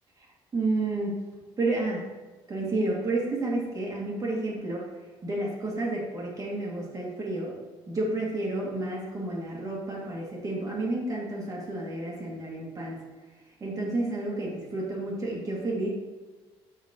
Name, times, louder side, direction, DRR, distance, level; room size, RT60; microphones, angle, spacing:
voice 1, 0.5-1.2 1.6-2.0 2.5-4.9 5.2-7.5 7.9-13.0 13.6-15.9, right 2 dB, 35° right, -4 dB, 2.3 m, -30 dB
12.0 x 4.2 x 3.0 m, 1.3 s
cardioid pair, 100°, 11 cm